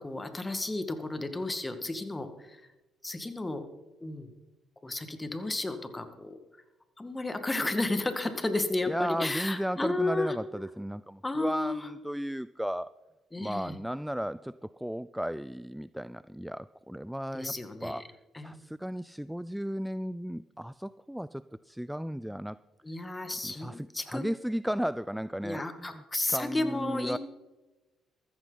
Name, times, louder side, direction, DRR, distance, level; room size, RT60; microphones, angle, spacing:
voice 1, 0.0-2.6 3.0-3.7 4.0-4.3 4.8-6.4 7.0-10.3 11.2-11.9 13.3-13.8 17.3-18.0 18.3-18.6 22.8-24.2 25.4-27.2, left 2 dB, 20° left, 8 dB, 1.9 m, -33 dB
voice 2, 8.9-12.9 13.4-17.5 17.8-18.0 18.4-22.6 23.4-26.0 26.3-27.2, equal, 5° right, 17 dB, 0.3 m, -35 dB
14.0 x 14.0 x 4.1 m, 1.1 s
supercardioid pair, 60°, 0 cm